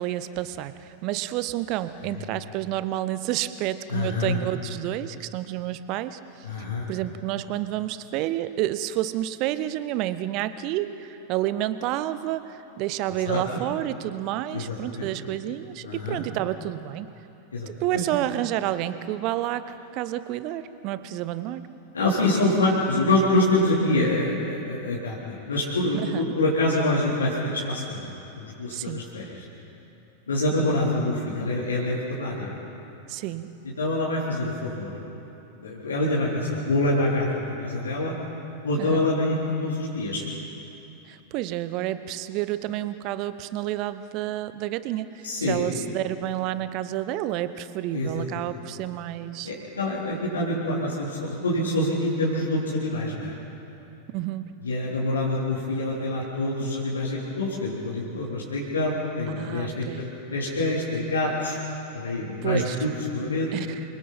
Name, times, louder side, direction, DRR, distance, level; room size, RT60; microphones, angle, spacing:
voice 1, 0.0-6.2 6.9-17.1 17.7-21.7 26.0-26.2 28.7-29.1 33.1-33.6 38.8-39.1 41.1-49.5 54.1-54.6 59.4-60.1 62.4-62.8 63.5-63.8, right 13 dB, 40° right, 14 dB, 0.9 m, -30 dB
voice 2, 3.9-4.4 6.4-6.9 13.2-13.4 14.5-15.1 15.8-16.2 17.5-18.0 21.9-29.4 30.3-32.5 33.8-35.0 35.6-38.1 38.6-40.2 45.2-45.6 47.9-48.6 49.4-53.3 54.6-61.6 61.9-63.5, left 2 dB, 70° left, -7 dB, 3.8 m, -26 dB
27.5 x 24.5 x 4.3 m, 3.0 s
figure-of-eight pair, 90°, 0 cm